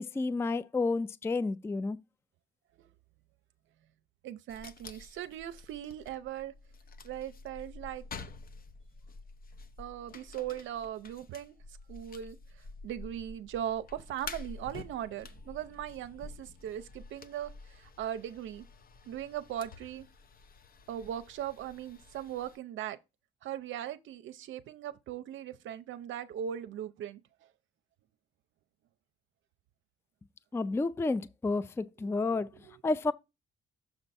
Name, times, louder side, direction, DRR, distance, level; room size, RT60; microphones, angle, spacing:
voice 1, 0.0-2.0 30.5-32.5 32.8-33.1, left 3 dB, 15° left, 0.3 m, -30 dB
voice 2, 4.2-6.5 7.0-8.0 9.8-18.6 19.1-20.1 20.9-23.0 23.4-27.2 32.0-32.8, right 10 dB, 75° right, 0.6 m, -39 dB
sound 1, 4.5-22.6, left 4 dB, 45° left, 0.8 m, -49 dB
6.9 x 4.4 x 4.1 m
cardioid pair, 90°, 20 cm